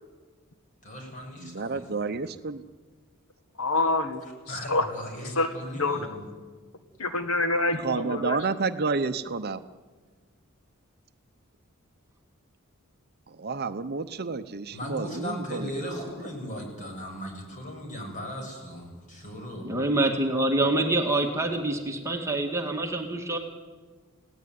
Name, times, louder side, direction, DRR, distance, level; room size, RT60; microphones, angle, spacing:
voice 1, 0.8-1.9 4.5-6.3 14.7-19.7, equal, 35° left, 2 dB, 7.5 m, -37 dB
voice 2, 1.4-2.6 7.8-9.6 13.3-16.3, right 4 dB, 45° right, 10 dB, 0.8 m, -30 dB
voice 3, 3.6-4.2 4.5-4.8 5.2-6.0 7.0-8.4, left 2 dB, 70° left, 7 dB, 1.7 m, -26 dB
voice 4, 19.6-23.4, right 2 dB, 15° right, 1 dB, 2.2 m, -26 dB
29.5 x 17.5 x 9.5 m, 1.4 s
head